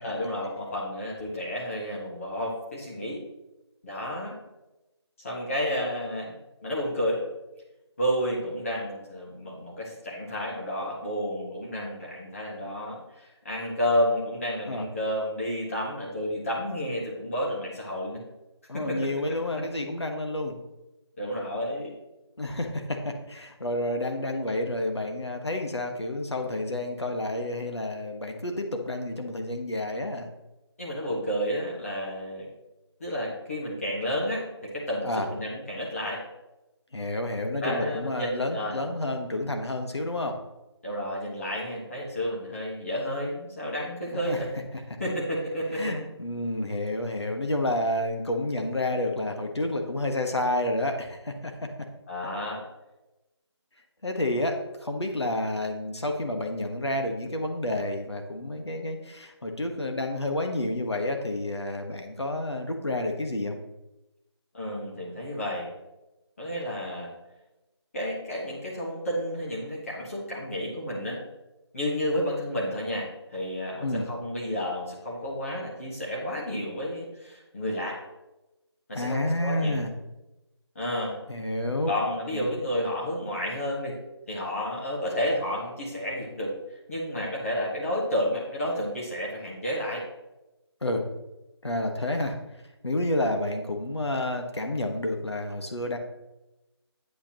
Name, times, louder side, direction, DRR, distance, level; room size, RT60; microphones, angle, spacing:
voice 1, 0.0-3.2 3.8-4.4 5.2-6.3 6.6-7.2 8.0-18.2 18.7-19.0 19.5-19.6 21.2-21.9 30.8-32.5 33.0-36.2 37.6-38.8 40.8-44.5 45.0-45.9 52.1-52.6 64.5-65.7 66.4-67.1 67.9-71.2 71.7-78.0 78.9-79.8 80.7-81.1 81.9-84.0 84.3-86.5 86.9-90.0, equal, 30° left, -5 dB, 1.6 m, -31 dB
voice 2, 18.7-20.6 22.4-30.3 35.0-35.3 36.9-40.4 44.1-44.4 45.7-51.5 54.0-63.6 73.8-74.0 78.9-79.9 81.3-81.9 82.3-82.5 90.8-91.0 91.6-92.4 92.8-96.0, left 1 dB, 70° left, 3 dB, 1.4 m, -30 dB
8.4 x 8.1 x 2.9 m, 0.99 s
figure-of-eight pair, 165°, 15 cm